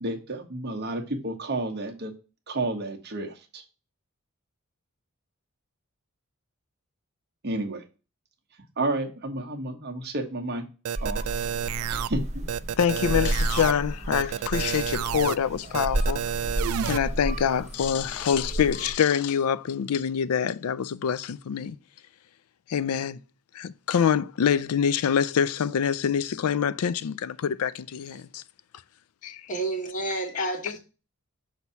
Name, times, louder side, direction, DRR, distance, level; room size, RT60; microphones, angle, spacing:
voice 1, 0.0-2.1 2.5-3.6 7.4-7.8 8.8-10.6 11.0-11.5 11.9-12.5, right 2 dB, 50° right, 1.1 m, -31 dB
sound 1, 10.8-12.1 12.5-13.7 14.1-15.3 15.7-17.0, right 9 dB, 75° right, 0.3 m, -30 dB
sound 2, 10.9-18.9, right 1 dB, 30° right, 0.8 m, -32 dB
voice 2, 12.8-16.2 16.9-21.8 22.7-23.2 23.5-28.4 29.2-29.4 30.4-30.5, left 8 dB, 80° left, 0.4 m, -25 dB
voice 3, 29.2-30.8, right 1 dB, 35° left, 1.3 m, -30 dB
6.3 x 2.8 x 5.5 m
head